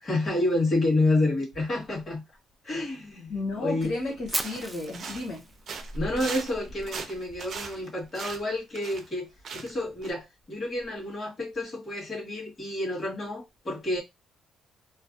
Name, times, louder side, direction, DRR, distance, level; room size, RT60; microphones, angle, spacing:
voice 1, 0.0-2.2 2.6-3.3 3.6-3.9 5.9-14.0, left 2 dB, 35° left, 1.9 m, -29 dB
voice 2, 3.3-5.5, left 2 dB, 80° left, 1.4 m, -33 dB
Fire, 4.3-6.4, right 2 dB, 15° right, 0.5 m, -35 dB
footsteps-wet-leaves, 4.3-5.4 5.7-9.1 9.4-9.8 10.0-10.1, right 5 dB, 60° right, 0.6 m, -39 dB
3.1 x 2.2 x 2.7 m
cardioid pair, 90°, 0 cm